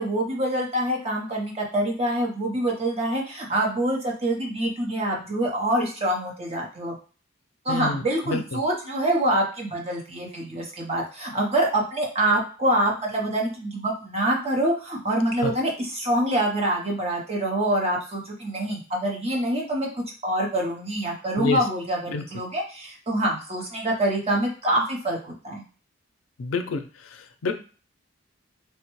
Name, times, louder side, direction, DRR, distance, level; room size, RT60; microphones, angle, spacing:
voice 1, 0.0-7.0 7.6-19.9 20.2-25.6, right 1 dB, 30° right, -1 dB, 0.7 m, -25 dB
voice 2, 7.7-8.4 15.4-15.5 21.4-21.6 22.1-22.2 26.4-27.5, left 3 dB, 90° left, 7 dB, 0.5 m, -28 dB
3.2 x 2.1 x 3.0 m, 0.37 s
head